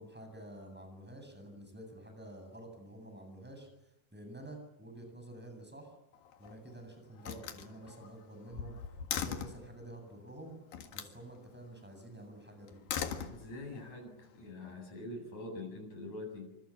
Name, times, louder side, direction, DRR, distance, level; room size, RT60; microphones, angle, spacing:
voice 1, 0.0-6.0 6.4-10.6 10.9-12.8, right 1 dB, 5° right, 4 dB, 7.8 m, -49 dB
Slam, 6.1-6.7 7.2-9.7 10.7-11.2 12.7-13.8, left 8 dB, 85° left, 3.5 m, -40 dB
voice 2, 13.3-16.5, left 2 dB, 60° left, 2 dB, 9.5 m, -44 dB
27.5 x 26.0 x 7.4 m, 0.87 s
omnidirectional pair, 3.9 m